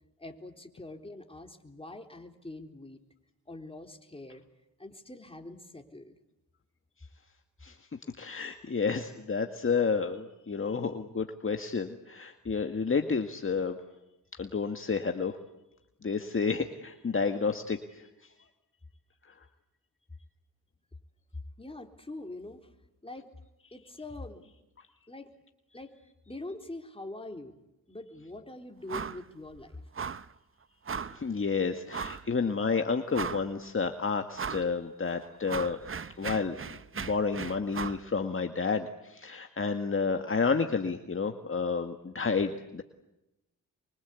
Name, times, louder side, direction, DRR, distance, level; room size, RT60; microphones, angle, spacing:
voice 1, 0.2-3.0 3.5-4.4 4.8-6.2 21.6-22.6 23.0-23.3 23.7-24.5 25.1-25.3 25.7-25.9 26.3-27.5 27.9-29.8, left 2 dB, 15° left, 4 dB, 3.8 m, -44 dB
voice 2, 8.2-13.8 14.4-15.4 16.0-18.1 31.1-35.8 36.2-36.6 37.0-42.8, left 5 dB, 35° left, 6 dB, 1.9 m, -30 dB
sound 1, 28.9-29.2 29.5-29.6 29.9-30.3 30.9-31.2 31.9-32.3 32.7-32.8 33.1-33.6 34.3-34.7 35.1-38.0, right 6 dB, 35° right, 0.9 m, -37 dB
25.5 x 24.0 x 8.4 m, 0.94 s
cardioid pair, 60°, 36 cm